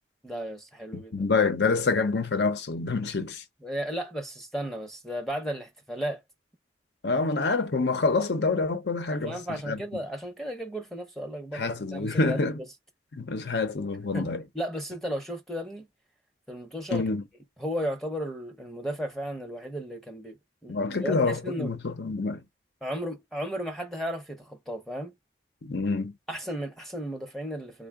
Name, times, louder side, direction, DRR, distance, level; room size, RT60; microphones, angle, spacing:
voice 1, 0.2-1.3 3.6-6.2 9.1-12.5 14.1-14.3 14.5-15.9 16.5-17.0 17.6-20.4 20.6-21.7 22.8-25.1 26.3-27.9, equal, ahead, 0.6 m, -34 dB
voice 2, 1.1-3.4 7.0-9.8 11.5-12.6 13.2-14.4 16.9-17.2 20.7-22.4 25.6-26.1, left 3 dB, 75° left, 0.7 m, -27 dB
3.8 x 2.0 x 3.4 m
head